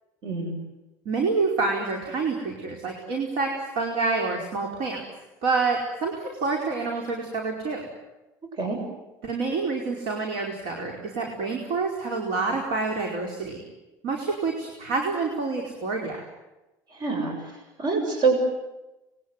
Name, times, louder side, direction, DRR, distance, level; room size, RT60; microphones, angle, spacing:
voice 1, 0.2-0.5 8.6-8.8 17.0-17.3 17.8-18.4, right 4 dB, 50° right, 4 dB, 7.2 m, -24 dB
voice 2, 1.0-5.0 5.4-7.8 9.2-13.6 14.0-16.2, right 4 dB, 70° right, 2 dB, 4.9 m, -27 dB
27.0 x 22.0 x 9.4 m, 1.0 s
supercardioid pair, 110°, 9 cm